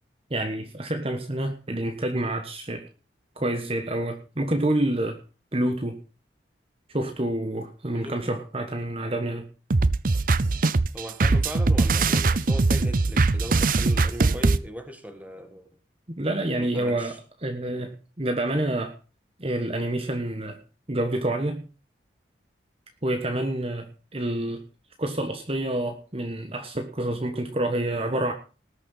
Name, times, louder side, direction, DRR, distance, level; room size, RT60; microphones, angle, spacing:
voice 1, 0.3-2.8 3.4-5.2 5.5-6.0 6.9-9.5 16.1-17.1 17.4-18.9 19.4-20.6 20.9-21.7 23.0-24.6 25.0-28.3, right 1 dB, 30° right, 5 dB, 1.3 m, -28 dB
voice 2, 7.9-8.3 10.9-15.7 16.6-17.2, equal, 10° right, 7 dB, 1.8 m, -38 dB
sound 1, 9.7-14.6, right 3 dB, 50° right, 0.6 m, -21 dB
19.0 x 6.6 x 5.6 m, 0.35 s
head